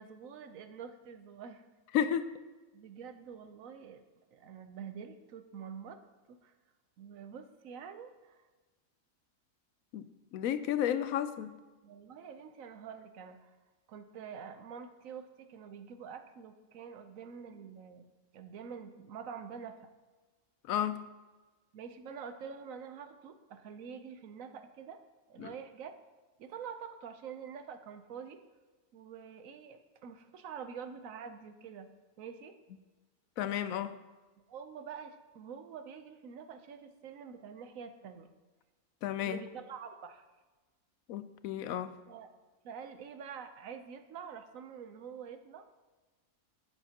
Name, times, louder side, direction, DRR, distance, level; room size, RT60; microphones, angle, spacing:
voice 1, 0.0-1.7 2.7-4.0 4.3-6.0 6.3-6.5 7.0-8.5 11.8-13.6 13.9-18.0 18.3-19.8 21.7-25.0 25.3-25.9 26.4-28.4 28.9-31.9 32.2-32.5 34.5-38.3 39.2-40.2 42.1-42.3 42.6-45.6, right 7 dB, 80° right, 8 dB, 1.1 m, -46 dB
voice 2, 1.9-2.3 9.9-10.1 10.3-11.6 20.7-21.0 25.4-25.5 33.4-34.0 39.0-39.4 41.1-41.9, left 10 dB, 90° left, 12 dB, 1.0 m, -32 dB
15.5 x 7.0 x 2.9 m, 1.3 s
omnidirectional pair, 1.4 m